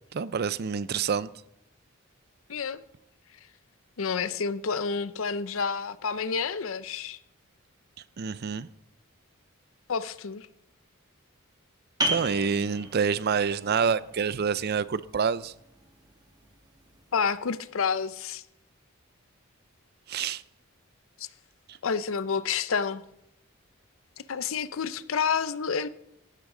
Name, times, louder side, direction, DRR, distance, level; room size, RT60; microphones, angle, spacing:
voice 1, 0.1-1.3 8.2-8.7 12.1-15.5 20.1-20.4 21.7-21.8, right 6 dB, 50° right, 0.4 m, -27 dB
voice 2, 2.5-2.8 4.0-7.2 9.9-10.5 17.1-18.4 21.2-21.3 21.8-23.0 24.3-25.9, left 6 dB, 70° left, 0.6 m, -29 dB
sound 1, 12.0-17.4, right 1 dB, 20° right, 1.7 m, -36 dB
15.0 x 12.0 x 3.8 m
head